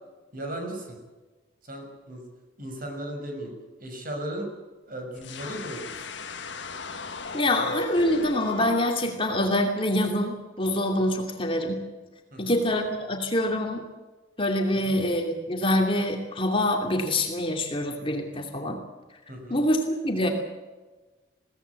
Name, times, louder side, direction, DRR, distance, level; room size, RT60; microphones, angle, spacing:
voice 1, 0.3-1.0 1.6-2.2 2.6-3.5 3.8-4.5 4.9-5.9 12.3-12.6 14.8-15.0 19.3-19.6, right 1 dB, 45° right, 3 dB, 6.3 m, -36 dB
sound 1, 5.2-8.7, left 3 dB, 65° left, 1.7 m, -36 dB
voice 2, 7.3-11.9 12.4-13.9 14.4-18.8 19.5-19.8 20.0-20.3, left 1 dB, 25° left, 2 dB, 2.6 m, -25 dB
22.5 x 17.5 x 8.3 m, 1.2 s
head